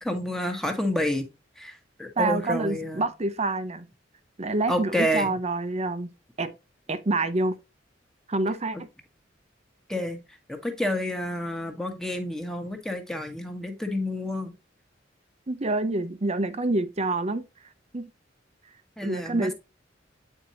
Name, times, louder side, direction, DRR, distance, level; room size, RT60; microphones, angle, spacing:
voice 1, 0.0-1.3 1.6-3.1 4.7-5.3 9.9-10.2 10.5-14.5 19.0-19.5, left 1 dB, 5° left, 1.3 m, -29 dB
voice 2, 2.2-3.9 4.4-6.1 6.4-6.5 6.9-7.5 8.3-8.8 15.5-17.4 17.9-18.1 19.0-19.5, right 2 dB, 35° right, 0.7 m, -27 dB
8.9 x 4.4 x 2.8 m
head